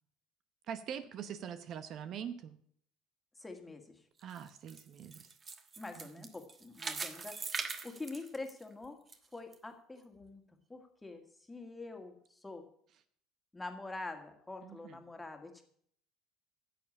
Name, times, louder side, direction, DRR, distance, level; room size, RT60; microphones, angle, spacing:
voice 1, 0.7-2.6 4.2-5.4 6.0-6.3 14.6-15.0, right 8 dB, 55° right, 12 dB, 0.8 m, -44 dB
voice 2, 3.4-4.0 5.8-7.4 7.8-9.0 9.3-10.4 10.7-12.6 13.5-15.6, left 3 dB, 10° left, 5 dB, 2.0 m, -45 dB
sound 1, 4.2-9.2 9.5-9.6 10.2-10.3, right 4 dB, 30° right, 1.3 m, -42 dB
10.5 x 7.1 x 8.5 m, 0.64 s
supercardioid pair, 90°, 0 cm